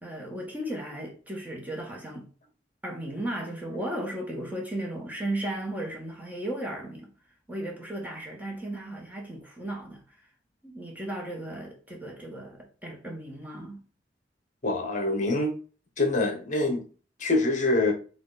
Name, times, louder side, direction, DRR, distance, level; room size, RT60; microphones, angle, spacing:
voice 1, 0.0-2.3 2.8-7.1 7.5-10.2 10.6-13.8, right 1 dB, 10° right, 1.1 m, -35 dB
voice 2, 14.6-15.5 16.0-16.9 17.2-17.9, left 2 dB, 45° left, 0.9 m, -25 dB
4.3 x 2.4 x 3.9 m
head